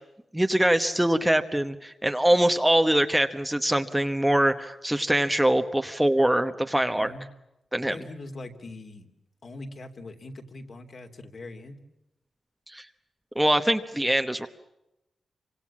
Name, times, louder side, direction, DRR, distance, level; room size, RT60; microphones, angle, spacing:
voice 1, 0.3-7.1 7.7-8.0 12.7-12.9 13.3-14.5, right 1 dB, 5° right, 7 dB, 1.1 m, -23 dB
voice 2, 6.9-7.3 7.9-9.1 9.4-11.8, left 2 dB, 50° left, 5 dB, 3.1 m, -42 dB
28.0 x 25.5 x 7.3 m, 0.91 s
wide cardioid pair, 140°, 0 cm